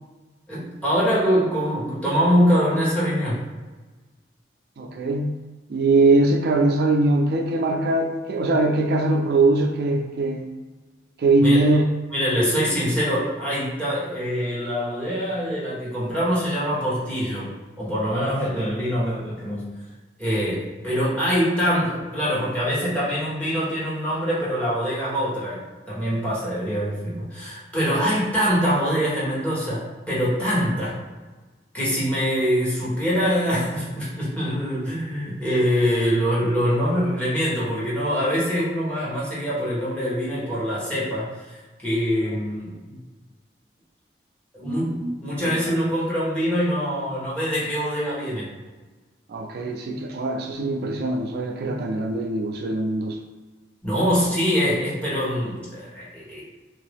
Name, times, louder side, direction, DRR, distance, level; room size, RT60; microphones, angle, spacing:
voice 1, 0.5-3.4 11.4-11.7 12.1-17.5 17.8-19.7 20.2-25.6 25.9-31.0 31.7-41.6 41.8-43.0 44.5-48.5 53.8-56.4, equal, 10° left, -8 dB, 1.1 m, -24 dB
voice 2, 4.8-5.3 5.7-10.5 11.2-11.9 49.3-53.2, right 2 dB, 60° right, 3 dB, 0.3 m, -21 dB
3.0 x 2.6 x 3.4 m, 1.3 s
head